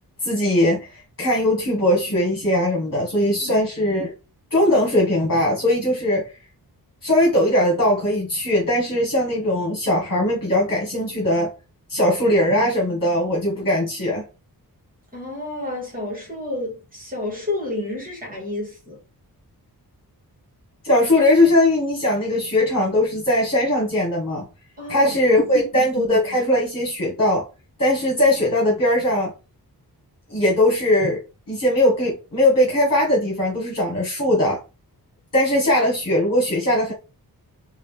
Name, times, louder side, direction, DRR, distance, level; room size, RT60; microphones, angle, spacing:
voice 1, 0.2-4.1 4.5-6.3 7.0-11.5 11.9-14.2 20.8-24.4 24.9-27.4 27.8-29.3 30.3-31.2 31.5-34.6 35.3-36.9, left 1 dB, 40° left, 1.6 m, -20 dB
voice 2, 15.1-19.0 24.8-25.5, left 2 dB, 20° right, 2.0 m, -31 dB
3.8 x 2.7 x 3.4 m
wide cardioid pair, 175°, 39 cm